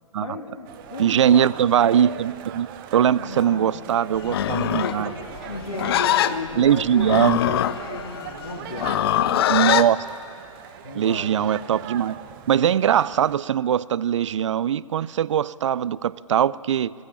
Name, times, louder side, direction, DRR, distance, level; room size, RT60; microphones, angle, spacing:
voice 1, 0.2-1.5 3.0-3.7 4.0-5.1 5.4-7.6 7.9-9.6 10.8-11.3, left 2 dB, 75° left, 2 dB, 3.2 m, -35 dB
sound 1, 0.6-13.4, right 11 dB, 40° right, 1.1 m, -40 dB
voice 2, 1.0-5.1 6.6-7.4 9.5-10.0 10.9-12.2 12.5-16.9, right 9 dB, 60° right, 21 dB, 0.5 m, -21 dB
Livestock farm animals working animals, 4.2-9.9, left 12 dB, 45° left, 0.7 m, -23 dB
21.5 x 21.5 x 8.8 m, 2.6 s
figure-of-eight pair, 120°, 18 cm